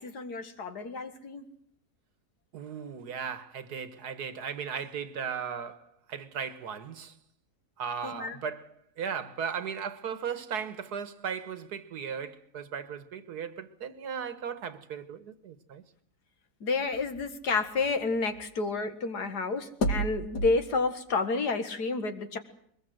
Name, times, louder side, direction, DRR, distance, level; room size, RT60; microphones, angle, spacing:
voice 1, 0.0-1.4 8.0-8.4 16.6-22.4, left 3 dB, 90° left, 2.4 m, -29 dB
voice 2, 2.5-7.1 7.8-8.7 9.0-15.8, right 7 dB, 80° right, 1.9 m, -37 dB
22.5 x 20.5 x 7.9 m
omnidirectional pair, 1.7 m